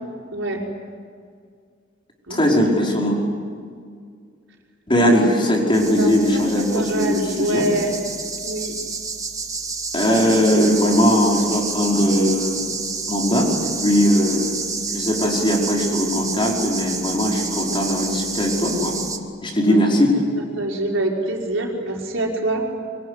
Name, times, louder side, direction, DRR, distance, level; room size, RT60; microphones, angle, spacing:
voice 1, 2.3-3.2 4.9-7.7 9.9-12.6 13.1-14.5 14.9-18.9 19.4-20.1, equal, 25° left, -1 dB, 5.2 m, -19 dB
sound 1, 5.7-19.2, right 4 dB, 20° right, 1.9 m, -29 dB
voice 2, 6.0-7.9 8.4-8.7 15.3-15.4 19.6-19.8 20.3-22.7, right 1 dB, 75° right, -1 dB, 5.4 m, -25 dB
25.0 x 24.0 x 9.9 m, 2.1 s
head